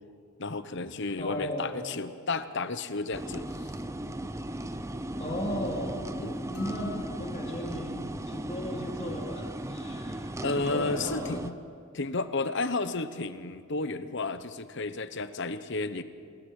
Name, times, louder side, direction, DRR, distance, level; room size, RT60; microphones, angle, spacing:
voice 1, 0.4-3.4 6.2-6.4 10.4-11.5 11.9-16.0, left 3 dB, 50° left, 12 dB, 1.0 m, -32 dB
voice 2, 1.2-1.8 5.2-6.0 6.5-7.9 8.2-11.4, equal, 30° left, -1 dB, 3.5 m, -36 dB
sound 1, 3.1-11.5, right 1 dB, 15° right, 0.6 m, -36 dB
sound 2, 6.5-7.9, left 8 dB, 85° left, 2.6 m, -50 dB
27.5 x 21.0 x 6.6 m, 2.3 s
head